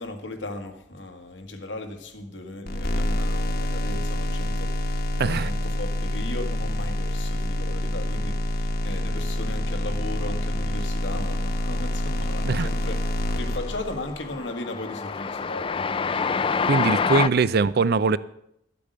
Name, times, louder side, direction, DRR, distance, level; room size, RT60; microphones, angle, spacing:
voice 1, 0.0-13.0 13.3-16.9, left 2 dB, 90° left, 1.6 m, -37 dB
sound 1, 2.7-14.3, left 1 dB, 55° left, 1.2 m, -27 dB
voice 2, 5.2-5.5 12.4-12.7 16.7-18.2, right 4 dB, 60° right, 0.5 m, -21 dB
Train, 11.6-12.1 12.4-17.3, left 5 dB, 30° left, 0.4 m, -27 dB
12.5 x 8.4 x 6.6 m
head